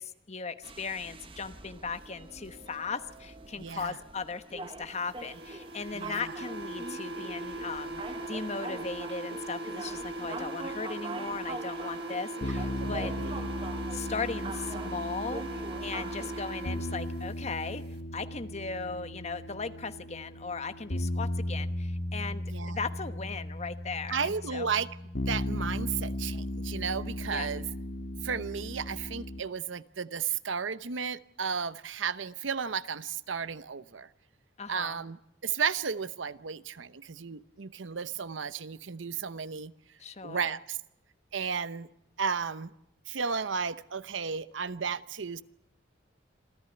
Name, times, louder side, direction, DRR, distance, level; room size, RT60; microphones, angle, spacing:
voice 1, 0.0-17.8 18.1-24.7 27.3-27.5 34.6-35.0 40.0-40.6, left 4 dB, 35° left, 10 dB, 1.0 m, -38 dB
sound 1, 0.6-16.4, right 3 dB, 30° right, 1.1 m, -44 dB
voice 2, 3.5-4.0 5.9-6.2 12.8-13.4 22.5-22.8 24.1-24.9 25.3-27.6 28.2-34.1 34.7-35.2 35.4-39.7 40.2-40.8 41.3-41.9 42.2-42.7 43.1-45.4, right 6 dB, 80° right, 15 dB, 0.8 m, -33 dB
sound 2, 5.2-17.3, right 2 dB, 55° right, 1.5 m, -39 dB
sound 3, 12.4-29.4, left 1 dB, 65° left, 1.9 m, -36 dB
27.0 x 14.0 x 9.8 m, 0.83 s
head